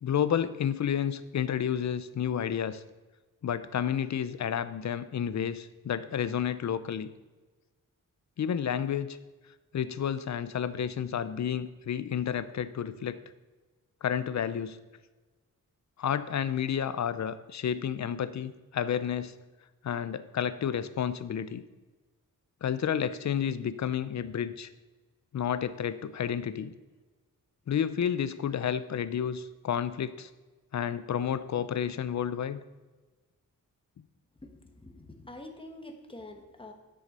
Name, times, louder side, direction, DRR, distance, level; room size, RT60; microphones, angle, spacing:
voice 1, 0.0-2.8 3.4-7.1 8.4-9.2 9.7-13.2 14.0-14.8 16.0-19.3 19.8-21.6 22.6-24.7 25.3-26.7 27.7-30.3 30.7-32.6, left 8 dB, 55° left, 14 dB, 0.6 m, -31 dB
voice 2, 34.4-36.7, left 2 dB, 15° left, 4 dB, 1.2 m, -46 dB
10.0 x 6.5 x 5.4 m, 1.3 s
wide cardioid pair, 135°, 34 cm